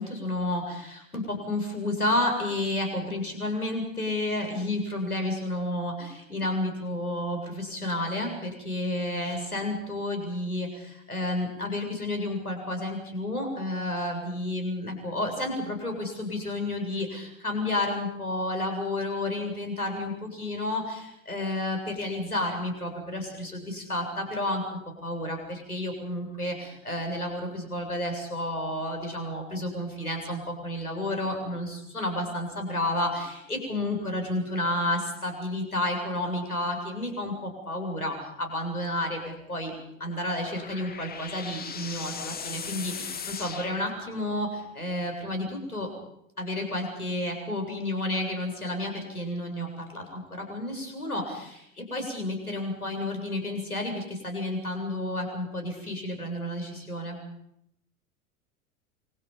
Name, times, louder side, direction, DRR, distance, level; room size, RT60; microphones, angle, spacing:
voice 1, 0.0-39.7 40.0-45.9 46.4-57.2, left 1 dB, 90° left, 4 dB, 7.7 m, -31 dB
sound 1, 40.0-44.5, left 6 dB, 20° left, 2.8 m, -39 dB
28.0 x 26.0 x 5.6 m, 0.77 s
figure-of-eight pair, 85°, 43 cm